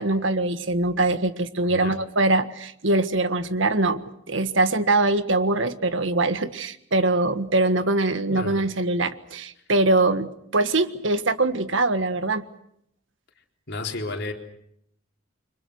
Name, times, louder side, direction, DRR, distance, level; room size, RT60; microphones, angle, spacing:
voice 1, 0.0-4.0 4.3-12.4, right 2 dB, 65° right, 1.6 m, -23 dB
voice 2, 1.7-2.0 8.3-8.6 13.7-14.3, left 2 dB, 60° left, 4.0 m, -32 dB
30.0 x 25.0 x 6.4 m
head